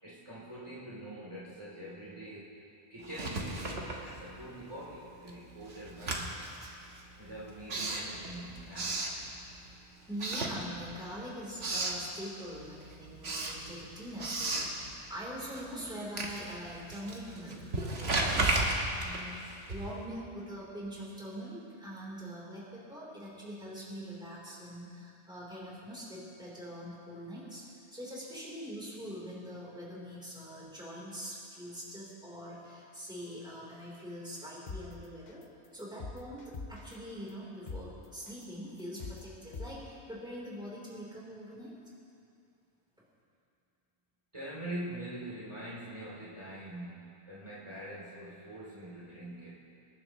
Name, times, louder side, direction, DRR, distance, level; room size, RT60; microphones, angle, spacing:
voice 1, 0.0-2.5 2.9-6.4 7.2-9.3 44.3-49.5, right 1 dB, 25° right, -9 dB, 3.1 m, -44 dB
Writing, 3.0-4.6 4.9-9.7 10.1-11.1 11.4-12.1 12.5-20.1, right 2 dB, 60° right, 1.6 m, -35 dB
voice 2, 10.1-18.4 19.0-27.6 27.9-35.4 35.7-41.7, equal, 5° right, -7 dB, 3.5 m, -43 dB
sound 1, 34.7-34.8 35.3-35.4 35.8-36.9 37.3-37.4 37.7-37.8 38.3-38.4 38.8-39.2 39.5-39.7, left 4 dB, 45° left, 0.9 m, -41 dB
26.5 x 11.0 x 3.0 m, 2.5 s
omnidirectional pair, 1.2 m